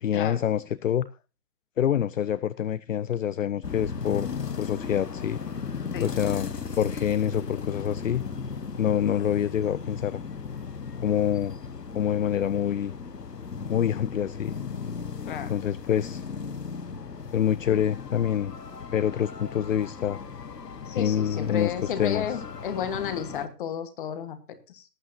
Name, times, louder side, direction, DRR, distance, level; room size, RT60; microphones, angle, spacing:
voice 1, 0.0-1.1 1.8-4.3 4.6-5.4 6.0-8.2 8.8-10.2 11.0-11.6 11.9-12.9 13.7-14.6 15.5-16.2 17.3-18.5 18.9-20.2 20.9-22.4, left 9 dB, 55° left, 0.5 m, -26 dB
sound 1, 3.6-23.5, left 5 dB, 75° left, 1.5 m, -36 dB
voice 2, 20.8-24.8, left 8 dB, 30° left, 1.5 m, -32 dB
19.0 x 8.6 x 2.8 m
figure-of-eight pair, 140°, 48 cm